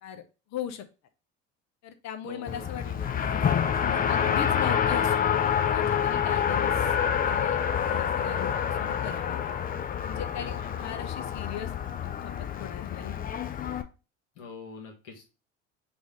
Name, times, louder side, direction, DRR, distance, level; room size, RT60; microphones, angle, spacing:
voice 1, 0.5-0.8 1.8-2.9 3.2-3.3 3.9-6.9 7.2-9.4 10.0-11.7 12.0-13.2, left 9 dB, 50° left, 10 dB, 0.8 m, -39 dB
voice 2, 2.2-3.3 10.3-11.1 14.3-15.3, left 4 dB, 75° left, 0 dB, 1.4 m, -44 dB
Race car auto racing, 2.5-13.8, left 8 dB, 25° left, 0.4 m, -27 dB
4.8 x 2.6 x 3.5 m, 0.31 s
hypercardioid pair, 65°, 36 cm